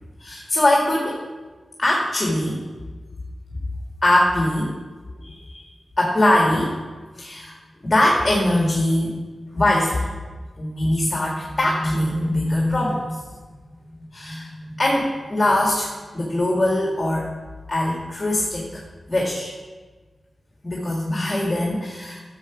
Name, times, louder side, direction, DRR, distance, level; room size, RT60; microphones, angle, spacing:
voice 1, 0.2-1.2 1.8-2.6 4.0-4.7 5.2-5.7 6.0-6.7 7.2-7.6 7.8-9.1 9.5-10.1 10.6-13.2 14.1-17.3 17.7-18.8 19.1-19.6 20.6-22.2, left 1 dB, 30° left, -2 dB, 1.9 m, -22 dB
10.5 x 7.0 x 4.9 m, 1.3 s
cardioid pair, 65°, 0 cm